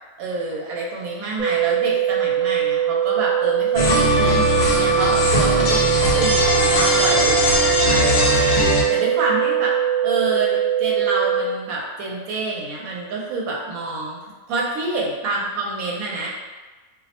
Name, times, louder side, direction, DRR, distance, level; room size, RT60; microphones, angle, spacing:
voice 1, 0.2-14.2 14.5-16.3, right 3 dB, 80° right, -3 dB, 1.0 m, -27 dB
sound 1, 1.4-11.4, right 11 dB, 50° right, 0.7 m, -21 dB
sound 2, 3.8-8.8, left 1 dB, 60° left, 0.7 m, -19 dB
2.6 x 2.0 x 2.8 m, 1.3 s
omnidirectional pair, 1.5 m